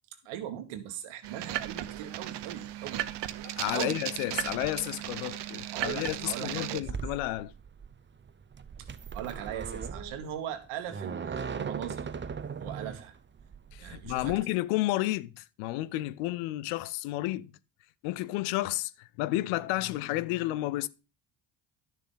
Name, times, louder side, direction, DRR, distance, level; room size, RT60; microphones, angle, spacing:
voice 1, 0.2-3.1 3.7-4.0 5.7-6.9 8.8-8.9 9.1-12.1 12.6-13.1 13.8-14.3, right 10 dB, 80° right, 1.6 m, -39 dB
sound 1, 1.2-6.8, right 13 dB, 60° right, 0.9 m, -36 dB
voice 2, 3.4-7.5 13.7-17.5 18.0-20.9, left 17 dB, 85° left, 0.6 m, -31 dB
sound 2, 6.8-14.4, right 6 dB, 25° right, 0.8 m, -39 dB
11.0 x 6.7 x 3.8 m
supercardioid pair, 60°, 49 cm